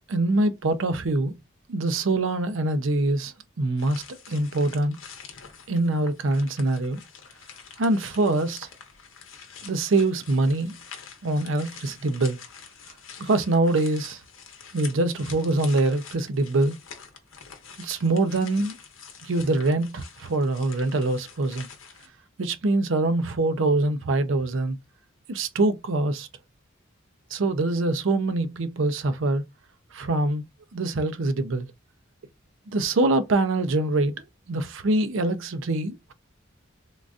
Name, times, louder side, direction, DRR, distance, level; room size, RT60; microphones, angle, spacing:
voice 1, 0.1-1.3 1.7-5.0 5.7-7.0 7.8-8.7 9.6-10.7 11.2-12.4 13.2-14.2 14.7-16.7 17.8-18.7 19.2-21.7 22.4-24.8 25.3-26.3 27.3-29.4 29.9-30.4 30.7-31.7 32.7-34.1 34.5-36.1, right 2 dB, 65° right, 0.5 m, -24 dB
sound 1, 3.8-22.1, left 6 dB, 70° left, 0.8 m, -46 dB
3.7 x 2.5 x 2.3 m
head